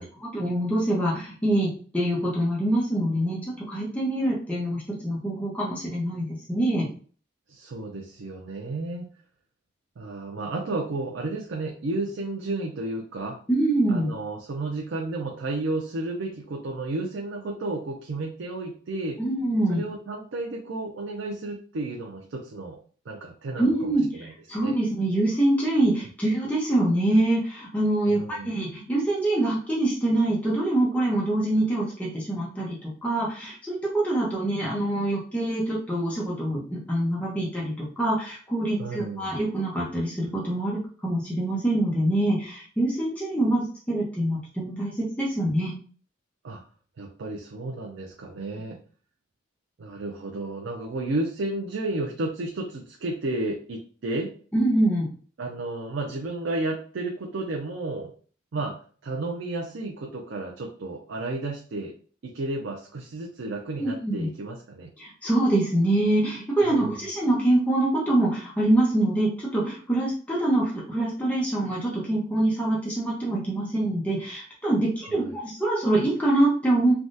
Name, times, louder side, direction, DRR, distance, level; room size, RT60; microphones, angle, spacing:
voice 1, 0.0-6.9 13.5-14.1 19.2-19.8 23.6-45.7 54.5-55.1 63.8-64.3 65.0-76.9, right 1 dB, 10° left, -5 dB, 0.7 m, -25 dB
voice 2, 7.5-9.1 10.0-13.4 13.9-19.2 19.7-22.8 23.1-24.8 28.1-28.5 38.8-39.3 46.4-46.6 47.0-48.8 49.8-54.3 55.4-58.1 58.5-61.9 62.2-64.9 66.7-66.9 75.1-75.3, right 2 dB, 75° right, 0 dB, 0.5 m, -32 dB
3.4 x 2.3 x 2.6 m, 0.42 s
head